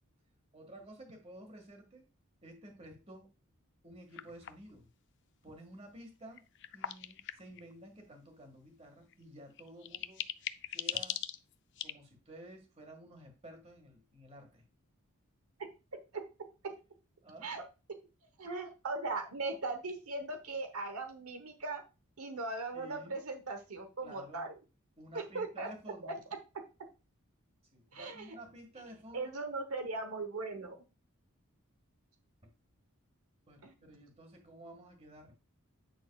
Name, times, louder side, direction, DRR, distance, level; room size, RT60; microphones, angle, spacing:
voice 1, 0.5-2.0 2.4-3.3 3.8-4.9 5.4-6.4 6.7-10.2 10.7-11.2 11.8-14.6 17.2-17.5 22.7-23.2 24.0-24.5 25.0-26.2 27.7-29.3 32.4-32.5 33.5-35.3, right 1 dB, 30° right, 4 dB, 1.8 m, -52 dB
sound 1, 4.1-4.7 6.4-7.7 9.1-9.2 9.6-11.9, left 10 dB, 55° left, 0.5 m, -39 dB
voice 2, 18.4-21.8 22.2-24.6 25.1-25.7 26.0-26.1 27.9-28.4 29.1-30.8 33.6-33.7, right 3 dB, 75° right, 6 dB, 1.1 m, -39 dB
9.3 x 6.3 x 2.4 m, 0.29 s
head